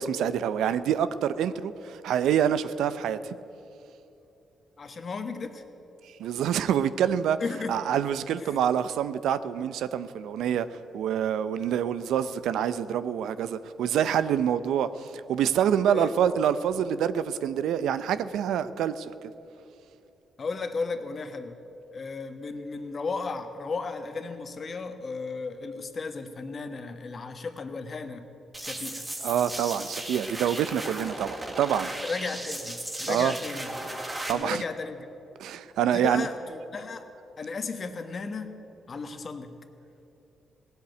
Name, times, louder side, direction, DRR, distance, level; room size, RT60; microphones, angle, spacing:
voice 1, 0.0-3.4 6.2-7.4 7.7-19.3 29.2-31.9 33.1-33.3 34.3-34.6 35.4-36.3, right 9 dB, 85° right, 14 dB, 0.5 m, -26 dB
voice 2, 4.8-5.6 7.4-7.8 8.4-8.6 15.9-16.1 20.4-21.6 21.9-28.3 28.6-29.1 32.0-33.7 34.3-35.1 35.9-37.1 37.4-38.6 38.9-39.5, left 4 dB, 50° left, 8 dB, 1.3 m, -35 dB
sound 1, 28.5-34.3, right 1 dB, 20° right, 3.0 m, -36 dB
17.0 x 8.2 x 9.3 m, 2.8 s
supercardioid pair, 65°, 0 cm